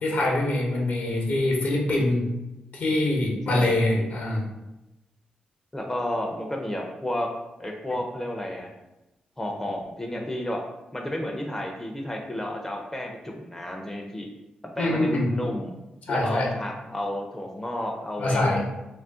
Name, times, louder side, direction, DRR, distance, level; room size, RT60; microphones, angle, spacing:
voice 1, 0.0-2.2 2.7-4.5 14.8-15.3 16.1-16.5 18.2-18.6, left 1 dB, 70° left, -1 dB, 0.7 m, -24 dB
voice 2, 3.5-4.1 5.7-7.3 7.6-8.7 9.4-10.6 10.9-14.3 14.8-15.7 16.1-18.4, left 1 dB, 10° left, 1 dB, 0.4 m, -31 dB
2.4 x 2.2 x 3.6 m, 0.99 s
cardioid pair, 65°, 3 cm